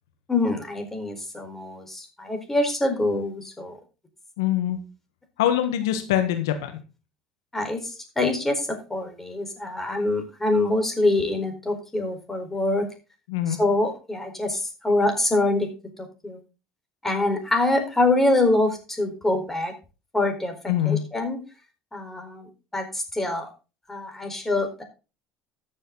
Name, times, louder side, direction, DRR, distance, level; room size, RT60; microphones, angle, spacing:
voice 1, 0.3-3.8 7.5-12.9 13.5-15.7 16.0-16.4 17.0-19.7 20.1-21.4 21.9-23.5 23.9-24.8, left 2 dB, 15° left, 4 dB, 4.4 m, -25 dB
voice 2, 4.4-4.8 5.4-6.7 13.3-13.6 20.7-21.0, left 11 dB, 85° left, 8 dB, 1.5 m, -23 dB
13.5 x 7.5 x 3.9 m, 0.31 s
hypercardioid pair, 75°, 2 cm